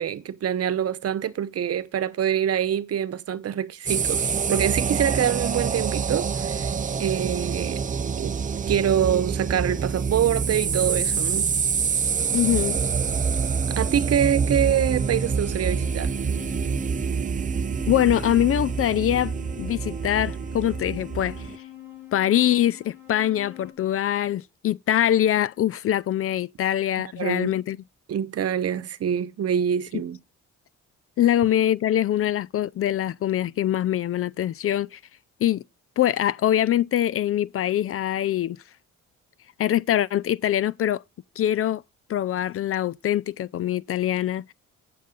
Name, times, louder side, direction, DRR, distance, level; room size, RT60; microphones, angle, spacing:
voice 1, 0.0-6.7 7.0-7.8 8.2-8.4 8.7-11.5 13.7-16.1 27.2-27.5 28.1-30.2, right 9 dB, 55° right, 1.0 m, -25 dB
sound 1, 3.9-21.6, right 6 dB, 25° right, 0.5 m, -26 dB
voice 2, 12.3-12.8 17.9-21.5 22.1-27.8 31.2-35.0 35.4-35.6 36.0-38.6 39.6-41.0 41.4-41.8 42.1-44.5, left 12 dB, 50° left, 0.4 m, -23 dB
sound 2, 14.6-23.7, left 11 dB, 75° left, 2.6 m, -44 dB
8.7 x 6.7 x 5.3 m
cardioid pair, 90°, 30 cm